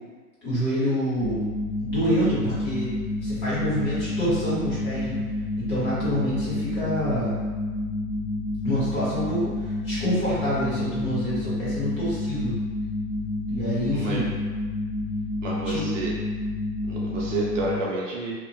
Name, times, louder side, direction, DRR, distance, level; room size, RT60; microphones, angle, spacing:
voice 1, 0.4-1.4 1.8-2.9 3.2-5.2 5.6-7.4 8.6-12.5 13.5-14.4 15.6-16.0, equal, 30° left, -11 dB, 1.2 m, -27 dB
sound 1, 1.2-17.8, left 2 dB, 65° left, 1.0 m, -29 dB
voice 2, 13.9-14.2 15.4-16.1 16.9-18.3, right 2 dB, 55° right, -4 dB, 0.6 m, -30 dB
2.8 x 2.0 x 2.7 m, 1.4 s
hypercardioid pair, 165°, 46 cm